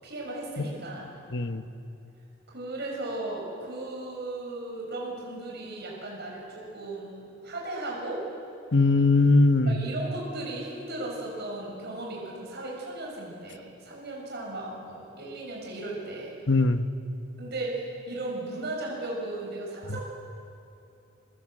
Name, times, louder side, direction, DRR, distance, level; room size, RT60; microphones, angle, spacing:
voice 1, 0.0-1.1 2.5-8.2 9.7-16.3 17.4-20.0, right 2 dB, 55° right, -2 dB, 6.5 m, -36 dB
voice 2, 1.3-1.6 8.7-9.8 16.5-16.9 19.9-20.0, left 3 dB, 60° left, 9 dB, 1.2 m, -21 dB
29.0 x 23.5 x 7.9 m, 2.7 s
head